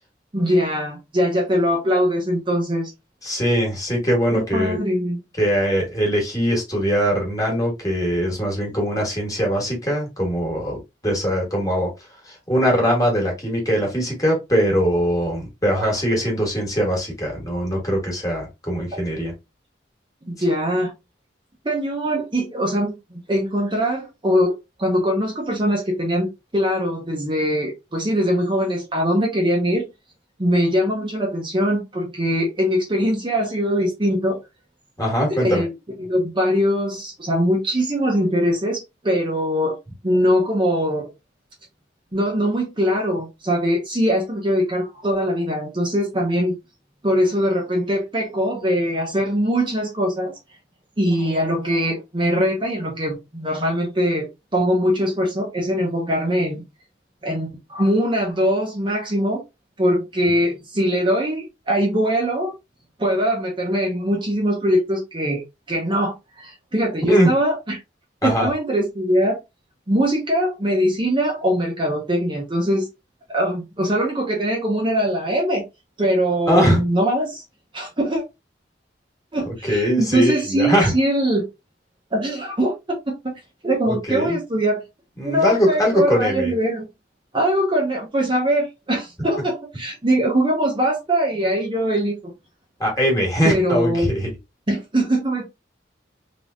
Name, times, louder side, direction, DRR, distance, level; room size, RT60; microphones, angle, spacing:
voice 1, 0.3-2.9 4.3-5.2 15.8-15.9 20.3-20.9 21.6-24.5 24.8-26.3 26.5-29.9 30.4-34.4 35.4-39.8 40.0-41.1 42.1-46.5 47.0-50.3 51.0-56.6 57.2-59.4 59.8-62.5 63.0-65.4 65.7-67.8 68.2-69.4 69.9-72.9 73.3-75.6 76.0-77.4 77.7-78.2 79.3-81.4 82.1-83.3 83.6-84.8 85.2-86.9 87.3-92.3 93.4-94.1 94.7-95.4, equal, 25° right, 0.8 m, -22 dB
voice 2, 3.2-4.8 5.4-11.9 12.2-19.3 35.0-35.6 67.1-67.3 68.2-68.5 76.5-76.8 79.4-80.9 83.9-84.4 85.2-86.5 92.8-94.3, equal, 20° left, 1.5 m, -21 dB
3.4 x 2.9 x 2.5 m
head